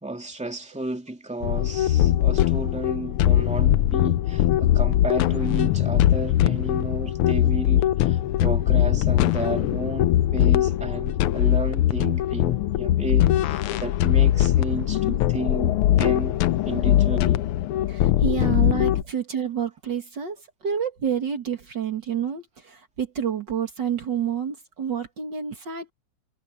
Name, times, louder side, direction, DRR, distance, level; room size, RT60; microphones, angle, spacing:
voice 1, 0.0-16.4 16.6-17.4, right 1 dB, 5° right, 2.7 m, -32 dB
sound 1, 1.4-19.0, left 12 dB, 80° left, 1.6 m, -21 dB
voice 2, 17.9-20.4 20.6-25.9, right 8 dB, 55° right, 2.6 m, -28 dB
omnidirectional pair, 2.4 m